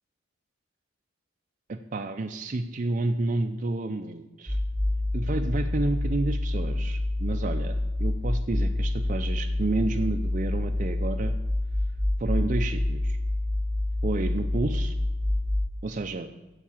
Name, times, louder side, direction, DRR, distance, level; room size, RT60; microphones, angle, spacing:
voice 1, 1.7-4.6 5.1-11.3 12.2-13.2 14.0-14.9 15.8-16.3, right 2 dB, 40° right, 5 dB, 0.5 m, -30 dB
sound 1, 4.5-15.7, left 1 dB, 5° right, 1.0 m, -27 dB
8.2 x 7.4 x 8.5 m, 1.1 s
head